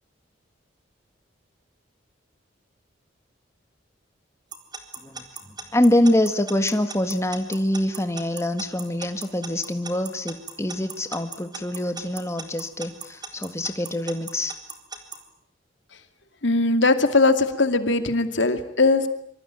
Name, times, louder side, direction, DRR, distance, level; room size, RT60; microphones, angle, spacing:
Alarm / Clock, 4.5-15.2, right 4 dB, 20° right, 3.9 m, -36 dB
voice 1, 5.7-14.5, left 1 dB, 15° left, 8 dB, 1.7 m, -24 dB
voice 2, 16.4-19.1, left 3 dB, 75° left, 9 dB, 2.5 m, -20 dB
26.0 x 25.0 x 9.1 m, 0.70 s
head